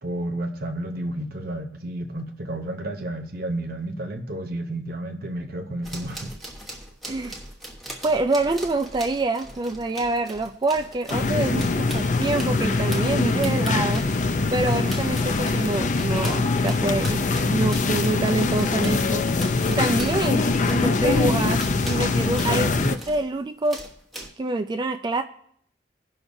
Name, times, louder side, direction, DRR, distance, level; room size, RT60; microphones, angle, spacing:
voice 1, 0.0-6.3 22.7-22.9, right 1 dB, 55° right, 5 dB, 0.9 m, -31 dB
sound 1, 5.8-23.3 23.6-24.3, right 1 dB, ahead, 1.1 m, -41 dB
voice 2, 8.0-14.1 14.5-17.2 17.5-19.3 19.7-23.8 24.4-25.2, right 2 dB, 25° right, 7 dB, 0.3 m, -26 dB
sound 2, 11.1-23.0, left 3 dB, 45° left, 0.5 m, -23 dB
17.0 x 5.7 x 2.7 m, 0.65 s
head